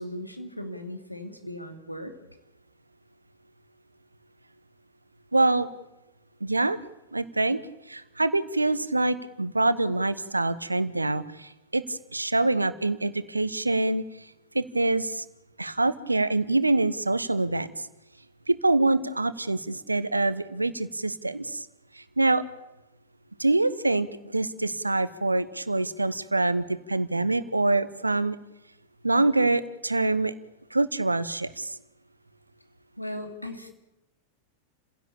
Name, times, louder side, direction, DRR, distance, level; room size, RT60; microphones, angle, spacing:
voice 1, 0.0-2.1 33.0-33.7, left 1 dB, 90° left, 5 dB, 2.9 m, -37 dB
voice 2, 5.3-5.7 6.4-6.8 7.1-7.6 7.9-14.0 14.5-15.2 15.6-17.9 18.5-21.7 22.0-22.4 23.4-28.4 29.0-30.3 30.7-31.7, right 2 dB, 85° right, 15 dB, 1.1 m, -25 dB
29.5 x 16.5 x 8.7 m, 0.95 s
figure-of-eight pair, 90°, 0 cm